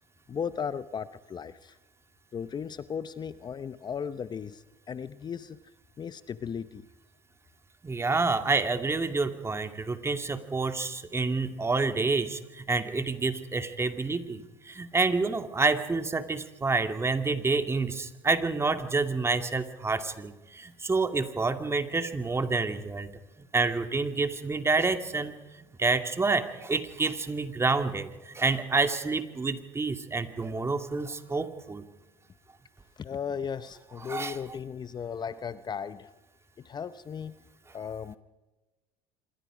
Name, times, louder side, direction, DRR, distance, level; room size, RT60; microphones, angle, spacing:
voice 1, 0.3-1.8 2.3-5.6 6.0-6.8 33.0-36.1 36.6-37.3 37.7-38.1, left 7 dB, 35° left, 14 dB, 0.9 m, -36 dB
voice 2, 7.8-23.1 23.5-31.8 34.0-34.4, right 3 dB, 20° right, 7 dB, 2.5 m, -28 dB
26.5 x 23.0 x 5.1 m, 1.1 s
hypercardioid pair, 85°, 13 cm